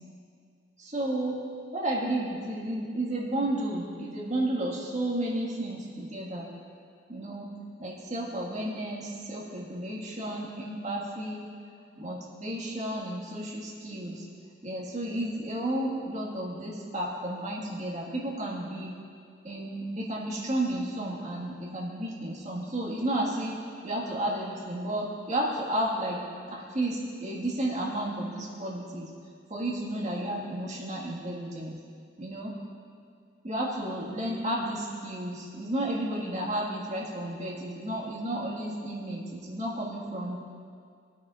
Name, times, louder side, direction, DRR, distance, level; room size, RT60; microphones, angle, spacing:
voice 1, 0.8-1.4 1.7-6.5 7.1-7.5 7.8-11.5 12.0-14.2 14.6-18.9 19.4-23.6 23.8-26.2 26.5-29.1 29.5-31.8 32.2-32.5 33.4-40.4, right 1 dB, 40° right, -4 dB, 1.7 m, -32 dB
17.0 x 9.1 x 2.5 m, 2.2 s
head